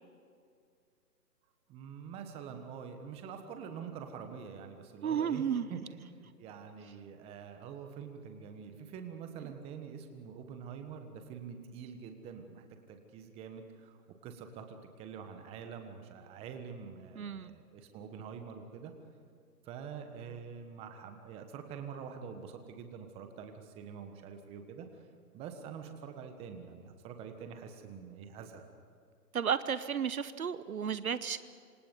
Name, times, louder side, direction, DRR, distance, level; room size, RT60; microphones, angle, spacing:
voice 1, 1.7-6.0 6.4-14.0 14.2-18.9 19.6-25.1 25.3-28.7, right 7 dB, 10° right, 6 dB, 1.4 m, -46 dB
voice 2, 5.0-5.7 17.2-17.5 29.3-31.4, right 7 dB, 60° right, 14 dB, 1.1 m, -33 dB
27.0 x 25.5 x 5.4 m, 2.2 s
figure-of-eight pair, 145°, 49 cm